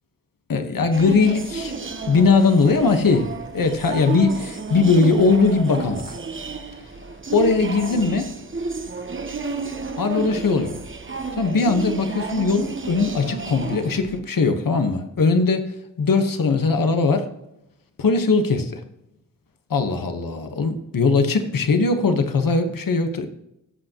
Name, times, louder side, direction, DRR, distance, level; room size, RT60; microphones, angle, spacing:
voice 1, 0.5-1.7 2.1-6.2 7.3-8.3 10.0-10.8 11.4-17.3 18.0-18.8 19.7-23.3, left 4 dB, 80° left, 6 dB, 1.3 m, -20 dB
sound 1, 0.9-14.2, right 4 dB, 35° right, 1.0 m, -31 dB
18.5 x 8.0 x 3.0 m, 0.84 s
wide cardioid pair, 125°, 33 cm